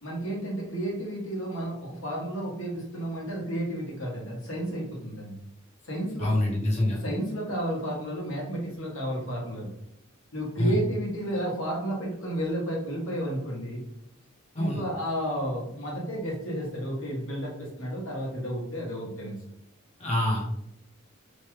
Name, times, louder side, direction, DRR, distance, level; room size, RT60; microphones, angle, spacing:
voice 1, 0.0-5.4 5.8-6.3 7.0-9.7 10.3-13.8 14.5-19.4, right 1 dB, 70° left, -3 dB, 1.2 m, -32 dB
voice 2, 6.2-7.0 10.6-10.7 14.6-14.8 20.0-20.4, left 1 dB, 30° left, -2 dB, 0.8 m, -25 dB
3.0 x 2.3 x 3.1 m, 0.79 s
head